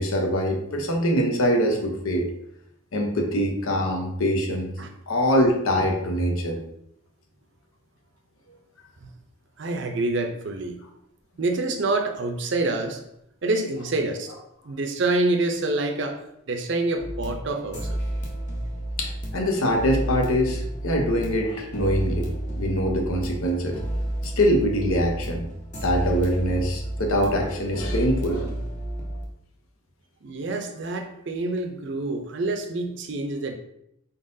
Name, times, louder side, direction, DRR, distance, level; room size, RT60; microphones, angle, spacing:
voice 1, 0.0-2.3 2.9-4.7 5.1-6.6 19.0-22.3 22.6-23.8 24.2-25.5 25.8-28.5, equal, 80° left, 2 dB, 0.8 m, -23 dB
voice 2, 9.6-10.8 11.4-13.0 13.4-14.3 14.6-16.2 16.5-18.0 30.2-33.6, right 2 dB, 55° right, 4 dB, 0.5 m, -27 dB
sound 1, 17.0-29.2, right 1 dB, 35° left, 0.8 m, -31 dB
4.1 x 3.8 x 2.7 m, 0.77 s
head